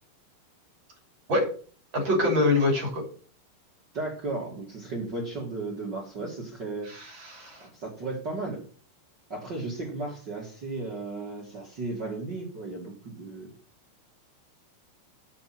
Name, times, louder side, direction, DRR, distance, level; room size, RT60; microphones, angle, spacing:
voice 1, 1.9-3.0 6.9-7.7, left 2 dB, 30° right, 1 dB, 2.9 m, -25 dB
voice 2, 3.9-6.9 7.6-8.6 9.3-13.5, right 2 dB, 75° right, -3 dB, 1.0 m, -35 dB
7.6 x 5.9 x 7.7 m, 0.42 s
omnidirectional pair, 5.6 m